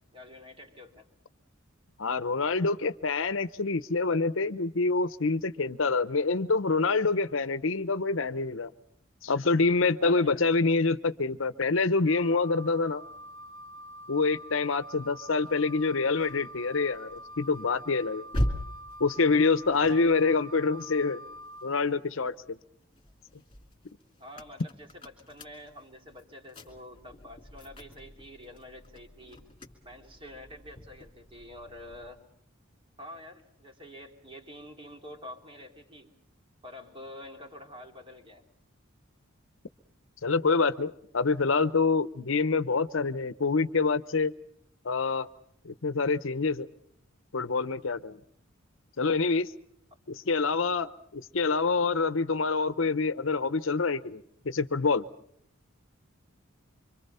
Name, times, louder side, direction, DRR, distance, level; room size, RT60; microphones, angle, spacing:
voice 1, 0.1-1.1 10.0-10.4 19.8-20.2 24.2-29.4 29.8-32.2 33.0-36.1 36.6-38.4, left 1 dB, 25° right, 3 dB, 3.1 m, -47 dB
voice 2, 2.0-8.7 9.2-13.0 14.1-18.2 19.0-21.2 21.6-22.6 40.2-44.3 44.8-45.3 45.6-46.7 47.3-48.2 49.0-49.5 50.1-55.1, left 4 dB, 70° left, 14 dB, 0.8 m, -26 dB
Wind instrument woodwind instrument, 12.1-21.7, equal, 70° right, 1.6 m, -46 dB
sound 1, 15.5-22.0 22.4-32.2, equal, 25° left, 2.6 m, -41 dB
26.0 x 25.5 x 5.6 m, 0.72 s
head